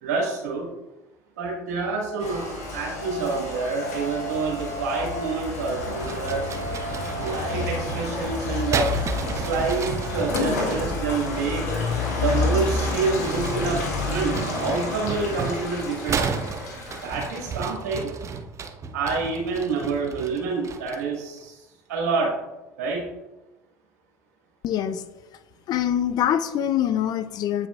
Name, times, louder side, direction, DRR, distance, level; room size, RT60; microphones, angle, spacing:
voice 1, 0.0-0.7 1.4-6.5 7.2-8.9 9.3-11.7 12.1-13.8 14.1-16.4 17.0-18.1 18.9-21.6 21.9-22.3 22.8-23.0, right 4 dB, 80° right, -2 dB, 1.9 m, -27 dB
Rain, 2.2-17.6, left 3 dB, 75° left, 1.4 m, -29 dB
sound 1, 6.0-10.8 12.6-21.1, right 5 dB, 35° right, 0.7 m, -33 dB
voice 2, 24.6-25.0 25.7-27.7, left 10 dB, 50° left, 12 dB, 0.5 m, -24 dB
8.2 x 4.8 x 2.5 m, 1.0 s
hypercardioid pair, 70°, 9 cm